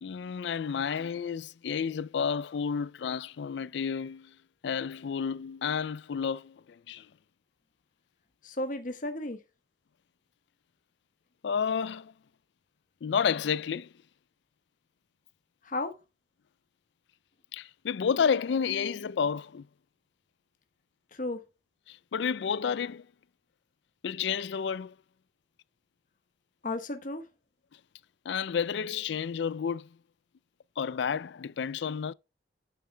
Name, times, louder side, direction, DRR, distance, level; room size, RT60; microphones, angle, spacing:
voice 1, 0.0-4.3 4.6-7.1 11.4-12.1 13.0-13.9 17.5-19.7 21.9-23.1 24.0-24.9 28.3-29.9 30.8-32.1, left 6 dB, 65° left, 0.4 m, -31 dB
voice 2, 8.4-9.4 15.6-16.0 21.1-21.4 26.6-27.2, left 2 dB, 45° left, 1.1 m, -34 dB
9.5 x 9.3 x 2.2 m
head